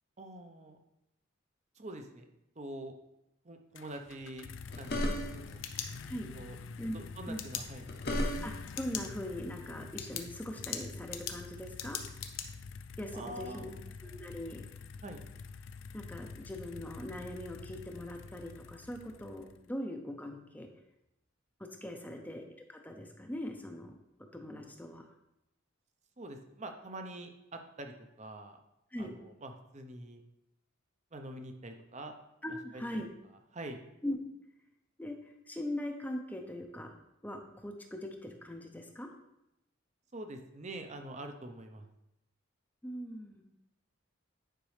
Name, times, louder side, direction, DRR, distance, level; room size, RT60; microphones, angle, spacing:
voice 1, 0.2-0.8 1.8-2.2 2.6-2.9 3.4-4.5 4.7-5.6 6.3-6.6 6.9-7.9 13.1-13.8 15.0-15.3 21.8-22.2 26.2-28.6 29.0-30.2 31.1-32.1 32.7-33.0 33.5-33.8 40.1-41.9, right 1 dB, 35° right, 5 dB, 0.8 m, -45 dB
sound 1, 3.7-19.7, left 5 dB, 65° left, 0.4 m, -47 dB
sound 2, 4.6-5.6 7.6-8.8, equal, 50° left, 1.0 m, -34 dB
sound 3, 5.4-6.4 7.4-7.6 8.7-9.1 9.5-9.6 10.0-12.5, left 9 dB, 80° left, 0.8 m, -40 dB
voice 2, 8.4-12.0 13.0-13.7 14.0-14.6 15.9-20.7 21.6-23.9 24.3-25.1 28.9-29.1 32.4-33.1 34.0-34.2 35.0-36.9 37.2-39.1 42.8-43.4, left 1 dB, 10° left, 3 dB, 0.7 m, -41 dB
10.0 x 5.2 x 3.3 m, 0.85 s
head